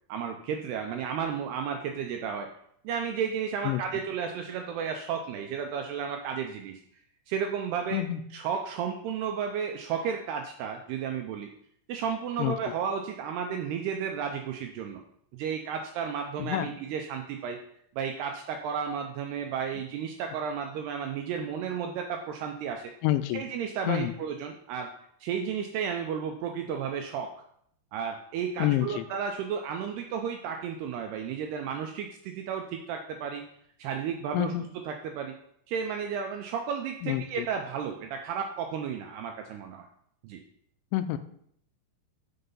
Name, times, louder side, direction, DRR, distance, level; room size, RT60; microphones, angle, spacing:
voice 1, 0.1-2.5 2.8-6.8 7.3-8.0 8.3-11.5 11.9-15.0 15.3-17.6 18.0-22.9 23.3-24.9 25.2-27.3 27.9-33.4 33.8-35.4 35.7-39.9 40.2-40.4, right 7 dB, 80° right, 4 dB, 2.4 m, -33 dB
voice 2, 23.0-23.4 23.9-24.1 28.6-29.0 34.3-34.6 37.0-37.5 40.9-41.2, left 14 dB, 85° left, 11 dB, 2.8 m, -27 dB
8.0 x 6.6 x 5.4 m, 0.68 s
omnidirectional pair, 5.4 m